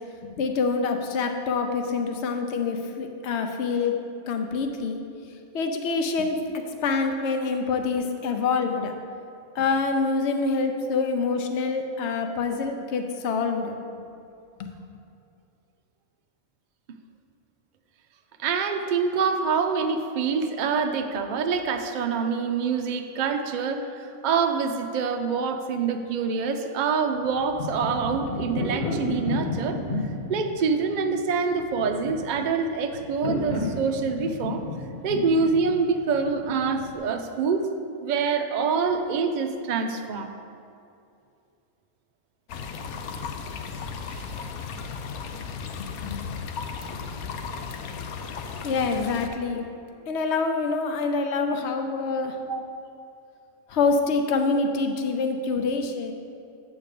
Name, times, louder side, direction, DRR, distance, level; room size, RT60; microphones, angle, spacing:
voice 1, 0.2-3.9 4.2-5.0 5.5-8.9 9.5-13.8 14.6-14.7 46.0-46.2 48.6-49.6 50.1-52.4 53.7-56.1, left 4 dB, 60° left, 5 dB, 0.9 m, -26 dB
voice 2, 18.4-29.8 30.3-34.6 35.0-37.7 38.0-40.3 44.1-44.3 52.5-52.6, right 5 dB, 75° right, 5 dB, 0.4 m, -26 dB
sound 1, 27.2-37.0, left 2 dB, 35° left, 1.2 m, -32 dB
sound 2, 42.5-49.3, left 5 dB, 85° left, 1.1 m, -35 dB
8.2 x 4.5 x 6.6 m, 2.6 s
omnidirectional pair, 1.5 m